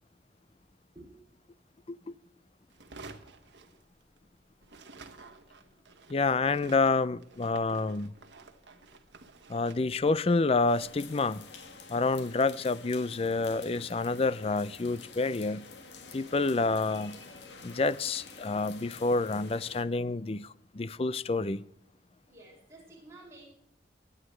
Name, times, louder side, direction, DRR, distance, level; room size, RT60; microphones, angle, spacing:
sound 1, 2.7-4.3 4.6-11.8, right 3 dB, 80° right, 1.3 m, -52 dB
voice 1, 6.1-8.1 9.5-11.5 11.9-15.6 16.1-17.2 17.6-20.5 20.7-21.6, left 3 dB, 30° left, 0.4 m, -28 dB
sound 2, 10.7-19.8, left 4 dB, 80° left, 1.8 m, -49 dB
voice 2, 22.3-23.5, right 2 dB, 15° right, 6.1 m, -52 dB
21.5 x 9.8 x 3.2 m
head